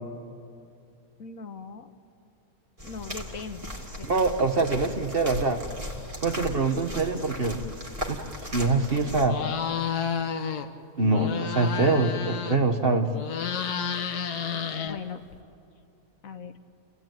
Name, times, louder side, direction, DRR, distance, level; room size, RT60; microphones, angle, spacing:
voice 1, 1.2-1.9 2.8-3.7 4.0-4.3 14.5-15.2 16.2-16.6, left 5 dB, 65° left, 8 dB, 1.4 m, -40 dB
sound 1, 2.8-9.3, equal, 20° right, 2.2 m, -37 dB
voice 2, 4.1-5.6 6.2-7.6 8.1-8.2 8.5-9.4 11.0-13.1, right 3 dB, 40° right, 5 dB, 1.3 m, -24 dB
sound 2, 9.2-10.7 11.0-12.8 13.1-15.4, left 7 dB, 80° left, 1.7 m, -31 dB
30.0 x 15.5 x 9.1 m, 2.6 s
omnidirectional pair, 1.7 m